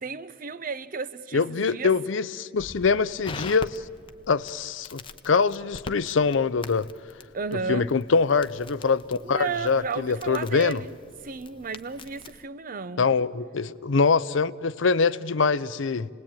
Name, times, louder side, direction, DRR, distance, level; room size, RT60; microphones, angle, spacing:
voice 1, 0.0-1.9 7.3-7.9 9.2-10.9 11.2-13.1, right 5 dB, 45° right, 0.7 m, -33 dB
voice 2, 1.3-3.8 4.3-6.9 7.5-10.8 13.0-16.1, left 5 dB, 75° left, 0.6 m, -24 dB
Crackle, 2.6-12.4, left 3 dB, 25° left, 0.7 m, -44 dB
28.5 x 19.0 x 8.8 m
head